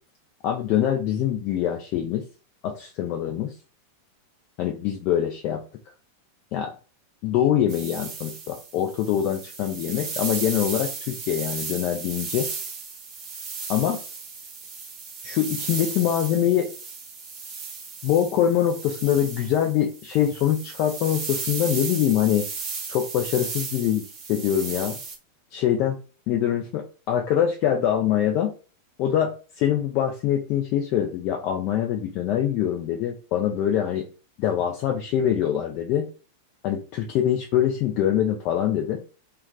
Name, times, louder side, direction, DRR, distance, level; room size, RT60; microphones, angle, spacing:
voice 1, 0.4-2.2 2.6-3.5 4.6-5.6 6.5-6.7 7.2-12.5 13.7-14.0 15.2-16.7 18.0-22.5 22.9-24.0 24.3-25.0 25.5-26.0 26.3-28.5 29.0-34.0 34.4-36.1 36.6-39.0, left 10 dB, 40° left, 3 dB, 0.4 m, -24 dB
sound 1, 7.7-25.2, right 5 dB, 35° right, 0.8 m, -35 dB
2.3 x 2.3 x 3.6 m, 0.35 s
figure-of-eight pair, 90°, 0 cm